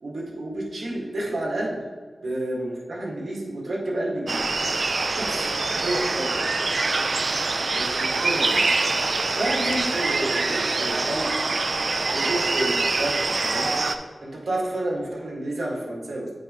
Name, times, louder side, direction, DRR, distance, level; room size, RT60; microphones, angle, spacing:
voice 1, 0.0-1.8 2.2-4.5 5.1-5.5 5.8-6.4 7.7-8.8 9.3-11.3 12.1-13.8 14.2-16.3, right 1 dB, 85° right, -4 dB, 1.9 m, -30 dB
sound 1, 4.3-14.0, right 3 dB, 65° right, 0.4 m, -24 dB
8.6 x 4.9 x 3.1 m, 1.5 s
wide cardioid pair, 65°, 0 cm